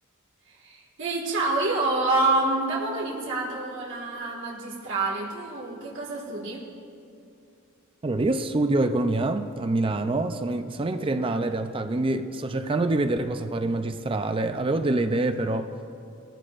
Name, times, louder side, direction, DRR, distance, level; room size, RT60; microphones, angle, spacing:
voice 1, 0.5-6.6, right 2 dB, 60° right, 1.8 m, -27 dB
voice 2, 8.0-15.7, right 2 dB, 25° right, 0.4 m, -26 dB
20.5 x 14.5 x 2.5 m
head